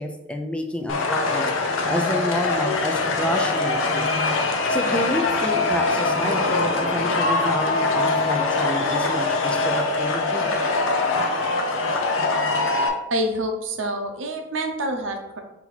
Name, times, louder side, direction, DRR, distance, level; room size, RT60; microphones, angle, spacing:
voice 1, 0.0-1.5 1.9-4.1 4.7-10.5, left 1 dB, 5° left, 4 dB, 0.4 m, -29 dB
sound 1, 0.9-12.9, left 3 dB, 80° left, 0.6 m, -23 dB
voice 2, 13.1-15.4, right 1 dB, 75° right, 4 dB, 0.7 m, -27 dB
4.3 x 2.8 x 4.0 m, 0.92 s
head